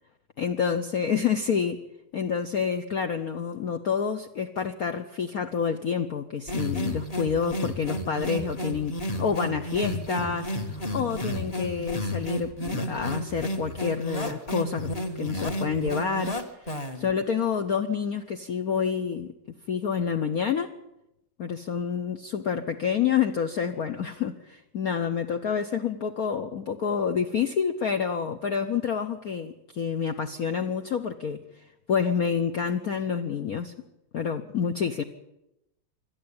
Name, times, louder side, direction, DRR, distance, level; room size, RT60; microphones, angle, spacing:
voice 1, 0.4-1.8 2.1-14.9 15.2-19.3 19.7-20.7 21.4-33.7 34.1-35.0, left 6 dB, 55° left, 6 dB, 1.2 m, -28 dB
sound 1, 6.5-17.1, equal, 20° left, 1.5 m, -32 dB
26.5 x 12.5 x 8.7 m, 0.90 s
omnidirectional pair, 2.3 m